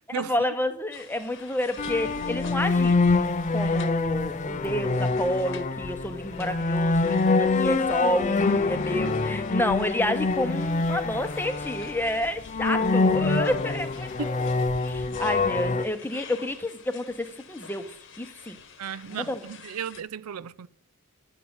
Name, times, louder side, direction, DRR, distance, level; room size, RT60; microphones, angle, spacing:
voice 1, 0.1-3.0 3.5-18.6 19.1-19.4, left 1 dB, 10° left, 0.8 m, -30 dB
sound 1, 0.9-20.0, left 6 dB, 60° left, 1.2 m, -48 dB
sound 2, 1.8-15.8, left 3 dB, 35° left, 0.5 m, -25 dB
voice 2, 18.8-20.7, right 7 dB, 80° right, 0.4 m, -34 dB
9.9 x 5.7 x 7.9 m
head